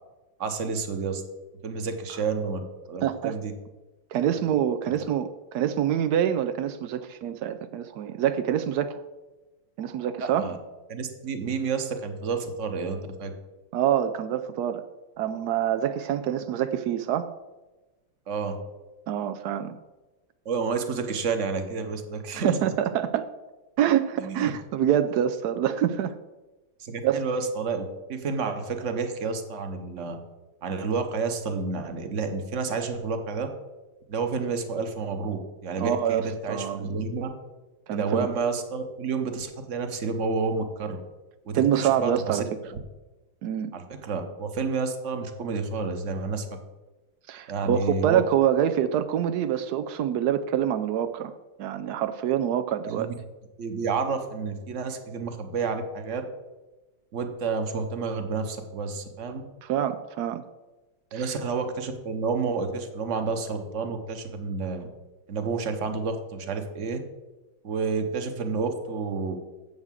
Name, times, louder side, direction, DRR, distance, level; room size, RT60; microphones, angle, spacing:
voice 1, 0.4-1.2 1.6-2.6 2.9-3.5 4.8-4.9 10.2-10.6 10.9-13.3 18.3-18.6 20.4-22.7 24.2-24.5 26.8-30.2 30.6-33.5 34.1-37.3 37.9-41.0 41.5-42.4 43.7-46.6 47.5-48.2 52.8-53.1 53.6-56.2 57.1-59.4 61.1-64.9 65.3-67.0 67.6-69.3, right 4 dB, 45° right, 7 dB, 1.1 m, -30 dB
voice 2, 3.0-3.3 4.1-8.9 9.8-10.4 13.7-14.8 15.2-17.3 19.1-19.8 22.3-23.3 23.8-26.1 27.0-27.2 35.8-37.0 37.9-38.3 41.5-42.4 43.4-43.7 47.3-51.3 51.6-53.1 59.6-60.4 61.1-61.3, right 10 dB, 85° right, 10 dB, 0.8 m, -26 dB
8.0 x 7.2 x 7.4 m, 1.1 s
omnidirectional pair, 2.3 m